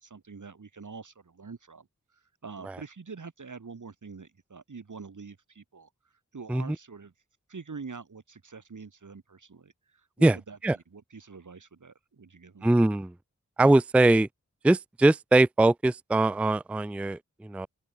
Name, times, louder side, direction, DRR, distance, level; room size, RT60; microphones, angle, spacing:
voice 1, 0.1-1.9 2.4-5.9 6.3-7.1 7.5-10.6 10.9-12.7, right 4 dB, 80° right, 4.0 m, -45 dB
voice 2, 12.6-13.1 13.6-14.3 14.6-17.7, right 2 dB, 5° right, 0.3 m, -22 dB
open air
wide cardioid pair, 65°, 30 cm